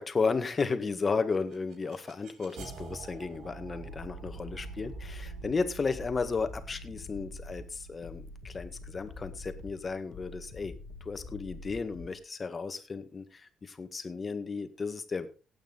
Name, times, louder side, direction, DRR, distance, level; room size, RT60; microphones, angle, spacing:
voice 1, 0.0-10.7 11.0-15.3, left 4 dB, 35° left, 9 dB, 1.8 m, -34 dB
sound 1, 1.1-10.0, right 6 dB, 80° right, 3.7 m, -47 dB
sound 2, 3.9-12.2, left 3 dB, 65° left, 2.5 m, -46 dB
16.0 x 8.9 x 4.1 m, 0.33 s
cardioid pair, 90°, 0 cm